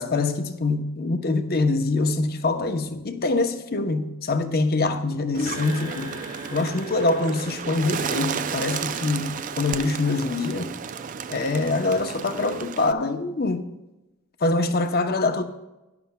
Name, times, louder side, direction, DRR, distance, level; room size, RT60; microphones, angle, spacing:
voice 1, 0.0-6.1 6.5-10.7 11.3-13.7 14.4-15.4, left 3 dB, 45° left, 0.7 m, -24 dB
Bird, 5.3-12.9, right 6 dB, 35° right, 0.3 m, -33 dB
sound 1, 5.4-9.9, right 1 dB, 85° right, 3.3 m, -41 dB
16.5 x 11.5 x 2.2 m
head